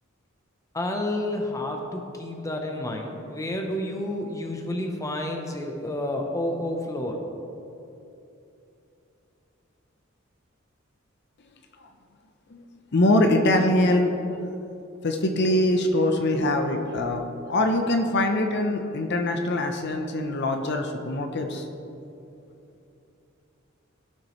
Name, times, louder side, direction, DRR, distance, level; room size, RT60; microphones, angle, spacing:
voice 1, 0.7-7.2, left 1 dB, 15° left, 2 dB, 0.7 m, -30 dB
voice 2, 12.9-14.4 15.0-17.2 17.5-21.7, left 1 dB, 55° left, 5 dB, 0.7 m, -23 dB
15.5 x 6.1 x 3.1 m, 2.8 s
head